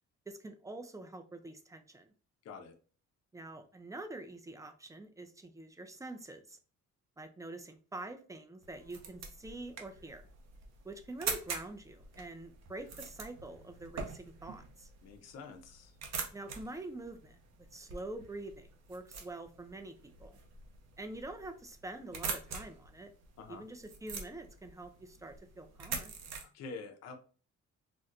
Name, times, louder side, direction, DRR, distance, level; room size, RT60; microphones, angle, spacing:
voice 1, 0.3-2.1 3.3-6.6 7.2-10.2 10.8-14.9 16.3-17.4 17.7-20.4 21.0-23.1 23.5-26.1, right 2 dB, 10° right, 7 dB, 0.5 m, -46 dB
voice 2, 2.4-2.7 15.0-15.9 23.4-23.7 26.4-27.1, left 4 dB, 60° left, 5 dB, 0.6 m, -47 dB
sound 1, 8.6-26.4, right 5 dB, 60° right, 0.8 m, -45 dB
4.3 x 2.1 x 2.5 m, 0.38 s
cardioid pair, 90°, 30 cm